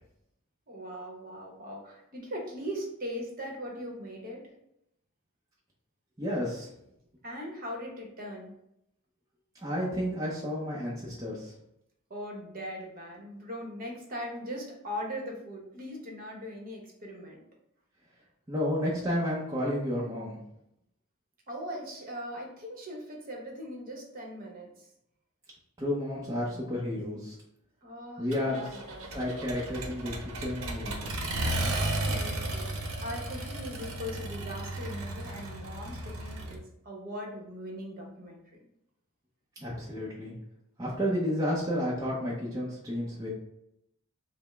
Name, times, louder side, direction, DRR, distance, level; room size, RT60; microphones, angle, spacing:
voice 1, 0.7-4.5 7.2-8.5 12.1-17.4 21.5-24.8 27.8-29.1 31.7-32.7 33.0-38.4, equal, 40° right, -1 dB, 0.9 m, -40 dB
voice 2, 6.2-6.7 9.6-11.5 18.5-20.4 25.8-27.4 28.2-28.8 29.1-31.3 39.6-40.3 40.8-43.3, equal, 15° right, -6 dB, 0.6 m, -31 dB
Accelerating revving vroom, 28.3-36.6, right 1 dB, 70° right, 0.8 m, -34 dB
5.2 x 2.0 x 3.3 m, 0.80 s
head